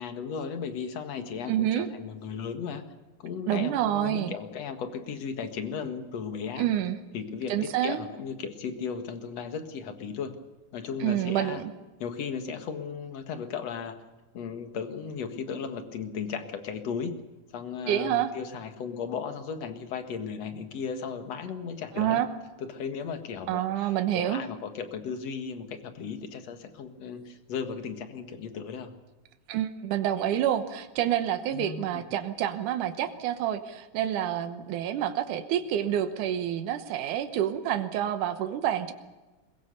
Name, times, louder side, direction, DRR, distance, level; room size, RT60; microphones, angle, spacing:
voice 1, 0.0-2.8 3.2-6.7 7.1-10.4 10.7-11.6 12.0-13.9 14.3-17.2 17.5-22.2 22.6-28.9 31.5-32.0, left 6 dB, 60° left, 8 dB, 2.7 m, -36 dB
voice 2, 1.5-1.9 3.5-4.3 6.6-7.0 7.5-8.1 11.0-11.7 17.9-18.3 21.9-22.3 23.5-24.4 29.5-38.9, right 11 dB, 85° right, 9 dB, 2.6 m, -28 dB
21.5 x 21.5 x 6.8 m, 1.2 s
omnidirectional pair, 3.5 m